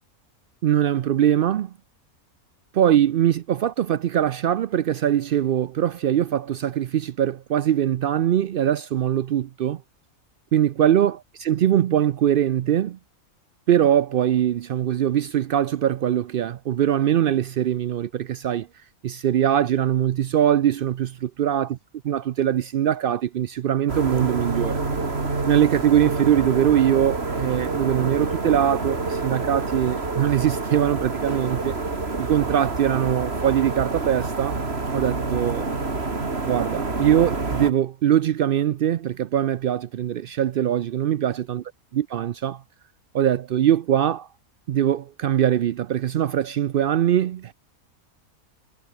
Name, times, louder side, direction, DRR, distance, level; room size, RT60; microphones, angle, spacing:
voice 1, 0.6-1.7 2.7-9.8 10.5-13.0 13.7-18.7 19.0-21.8 22.0-24.8 25.4-31.8 32.2-34.6 34.9-35.7 36.5-41.6 41.9-42.6 43.1-44.3 44.7-47.5, right 10 dB, 90° right, 0.4 m, -22 dB
sound 1, 23.9-37.7, right 3 dB, 45° right, 3.0 m, -27 dB
omnidirectional pair, 1.5 m